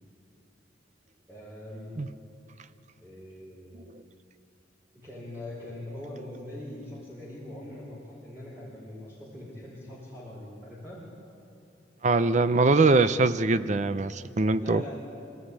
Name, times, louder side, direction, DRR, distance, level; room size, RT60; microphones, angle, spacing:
voice 1, 1.3-1.9 3.0-3.8 5.0-11.0 14.6-15.0, left 1 dB, 10° right, -7 dB, 4.8 m, -42 dB
voice 2, 12.0-14.9, right 3 dB, 40° right, 13 dB, 0.6 m, -23 dB
25.5 x 15.0 x 9.8 m, 2.8 s
head